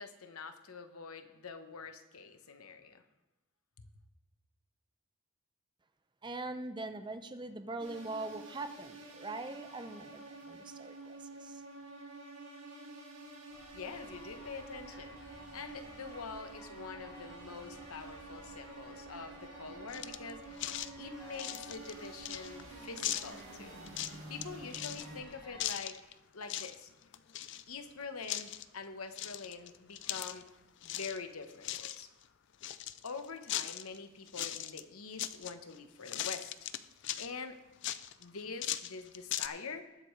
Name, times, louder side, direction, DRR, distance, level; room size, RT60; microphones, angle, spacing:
voice 1, 0.0-3.0 3.8-3.9 13.7-23.8 24.3-26.0 26.3-26.9 27.7-30.5 30.8-32.1 33.0-36.5 37.2-37.6 38.2-39.9, left 4 dB, 85° left, 8 dB, 1.0 m, -45 dB
voice 2, 6.2-10.2 10.5-11.6, right 2 dB, 20° right, 8 dB, 0.6 m, -42 dB
sound 1, 7.8-25.2, right 3 dB, 65° right, 2.4 m, -50 dB
sound 2, 13.5-25.7, left 1 dB, 20° left, 3.3 m, -55 dB
sound 3, 19.9-20.3 20.6-20.9 21.3-22.6 23.0-23.4 23.9-24.4 24.7-25.1 25.6-26.1 26.4-26.8 27.0-27.9 28.2-28.6 29.2-30.5 30.8-31.2 31.5-32.0 32.6-34.0 34.3-34.8 35.2-35.8 36.1-37.3 37.8-39.5, left 12 dB, 55° left, 0.4 m, -39 dB
19.5 x 8.1 x 3.2 m, 1.0 s
head